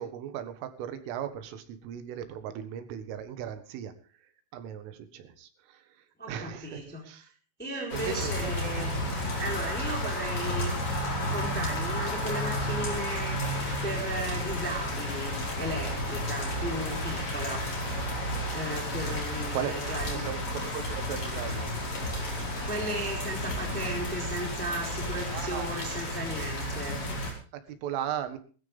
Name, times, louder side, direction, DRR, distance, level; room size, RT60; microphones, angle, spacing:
voice 1, 0.0-3.9 4.5-5.8 6.3-7.3 7.9-8.5 19.5-19.7 20.1-21.8 25.3-25.7 27.5-28.4, right 10 dB, 85° right, 9 dB, 4.1 m, -37 dB
voice 2, 6.2-7.1 7.6-9.0 9.4-10.7 11.3-13.4 13.8-17.7 18.5-20.2 22.6-27.0, right 1 dB, ahead, 0 dB, 3.3 m, -35 dB
sound 1, 7.9-27.3, left 1 dB, 30° left, 5.3 m, -32 dB
20.0 x 13.5 x 3.5 m, 0.38 s
omnidirectional pair, 5.6 m